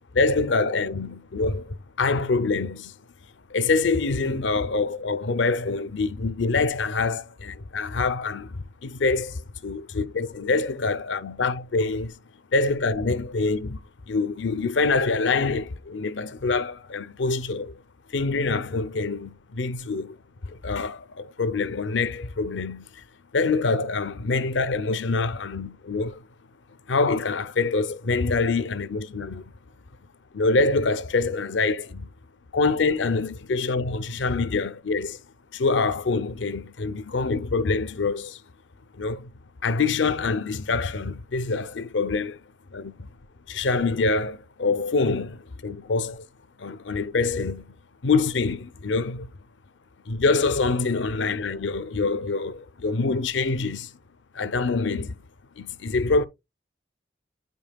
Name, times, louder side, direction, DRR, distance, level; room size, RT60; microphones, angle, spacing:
voice 1, 0.1-3.0 3.5-12.2 12.5-13.8 14.1-17.8 18.1-20.2 20.4-23.0 23.3-26.2 26.9-29.5 30.3-32.1 32.5-35.2 35.5-38.4 38.9-39.3 39.6-42.4 42.7-43.1 43.5-46.3 46.6-47.7 48.0-49.3 50.1-53.9 54.3-55.2 55.6-56.3, left 3 dB, 85° left, 0.6 m, -25 dB
9.2 x 5.4 x 2.3 m
head